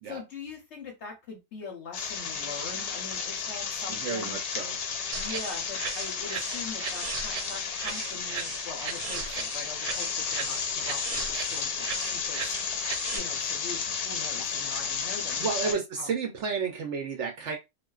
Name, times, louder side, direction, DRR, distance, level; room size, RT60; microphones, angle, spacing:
voice 1, 0.0-4.4 5.2-12.5 13.1-16.1, left 4 dB, 60° left, 0.8 m, -42 dB
sound 1, 1.9-15.7, left 6 dB, 85° left, 1.1 m, -33 dB
voice 2, 3.9-4.8 15.4-17.6, right 5 dB, 65° right, 0.7 m, -31 dB
sound 2, 5.1-13.2, right 6 dB, 90° right, 1.1 m, -37 dB
2.4 x 2.2 x 2.3 m
omnidirectional pair, 1.6 m